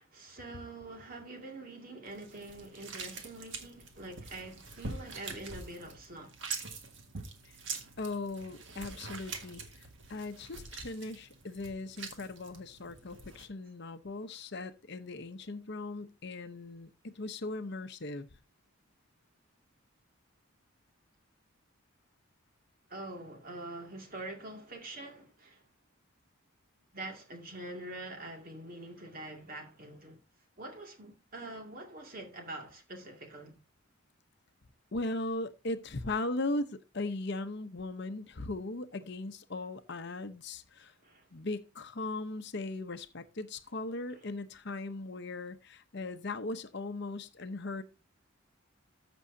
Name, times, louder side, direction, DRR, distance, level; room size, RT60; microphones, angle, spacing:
voice 1, 0.0-6.3 22.9-25.6 26.9-30.2 30.6-33.6 41.0-41.3 44.1-44.2, right 2 dB, 40° right, 2.2 m, -45 dB
sound 1, 2.1-13.5, right 4 dB, 60° right, 1.8 m, -45 dB
voice 2, 8.0-9.6 10.1-18.3 34.9-40.9 41.3-47.8, left 2 dB, 55° left, 0.8 m, -38 dB
14.0 x 6.2 x 2.7 m
head